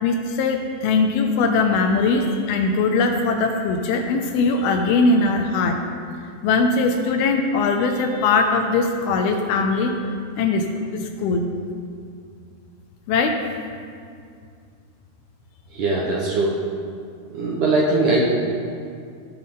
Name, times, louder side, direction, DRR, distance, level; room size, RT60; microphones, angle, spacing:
voice 1, 0.0-5.8 6.4-9.9 10.4-10.7 10.9-11.4 13.1-13.4, left 3 dB, 80° left, 4 dB, 2.4 m, -20 dB
voice 2, 15.7-16.6 17.3-18.3, right 2 dB, 70° right, -4 dB, 2.0 m, -21 dB
16.0 x 5.6 x 3.7 m, 2.3 s
omnidirectional pair, 4.6 m